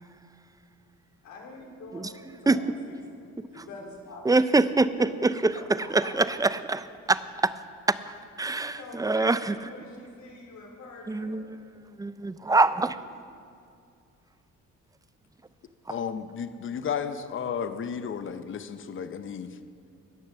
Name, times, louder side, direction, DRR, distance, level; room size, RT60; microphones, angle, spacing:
voice 1, 1.2-4.3 5.0-5.1 6.0-6.1 8.6-11.5, left 3 dB, 70° left, -1 dB, 3.4 m, -45 dB
voice 2, 4.2-5.5 5.9-7.5 7.9-9.6 11.1-11.6 12.0-13.0 15.9-16.0, right 3 dB, 10° right, 14 dB, 0.4 m, -24 dB
voice 3, 15.9-19.5, left 7 dB, 40° left, 10 dB, 0.7 m, -33 dB
18.5 x 6.7 x 6.7 m, 2.3 s
cardioid pair, 90°, 30 cm